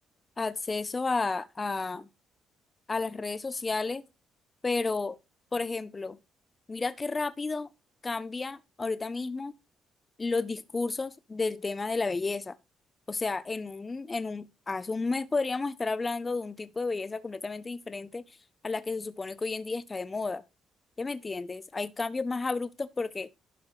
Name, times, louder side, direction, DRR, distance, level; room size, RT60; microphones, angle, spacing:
voice 1, 0.4-2.1 2.9-4.0 4.6-5.2 5.5-6.2 6.7-7.7 8.0-9.5 10.2-12.5 13.1-18.2 18.6-20.4 21.0-23.3, left 3 dB, 25° left, 0.5 m, -32 dB
11.5 x 4.6 x 4.8 m
cardioid pair, 90°, 0 cm